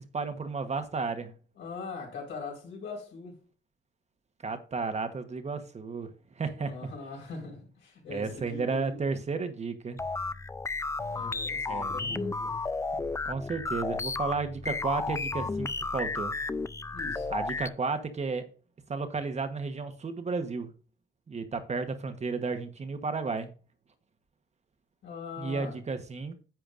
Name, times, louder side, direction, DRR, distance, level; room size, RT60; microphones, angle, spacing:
voice 1, 0.1-1.3 4.4-6.1 6.4-6.9 8.1-10.0 11.7-12.2 13.2-16.4 17.3-18.5 18.9-20.7 21.3-23.5 25.4-26.3, right 4 dB, 35° right, 1.1 m, -33 dB
voice 2, 1.6-3.3 6.6-9.0 11.1-12.6 16.9-17.3 25.0-25.8, left 4 dB, 70° left, 4.5 m, -41 dB
sound 1, 10.0-17.7, left 3 dB, 15° left, 0.4 m, -33 dB
10.5 x 7.7 x 2.5 m
cardioid pair, 90°, 20 cm